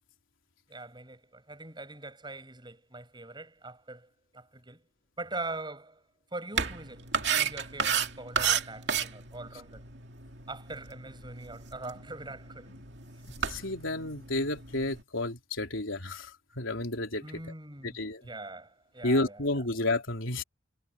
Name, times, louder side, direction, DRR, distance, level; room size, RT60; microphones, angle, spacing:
voice 1, 0.7-4.8 5.2-6.0 6.3-9.8 10.5-12.7 17.2-19.4, right 2 dB, 20° right, 7.0 m, -42 dB
sound 1, 6.5-15.0, right 6 dB, 55° right, 2.6 m, -33 dB
voice 2, 13.5-17.2 17.8-18.2 19.0-20.4, left 2 dB, 75° left, 3.6 m, -31 dB
head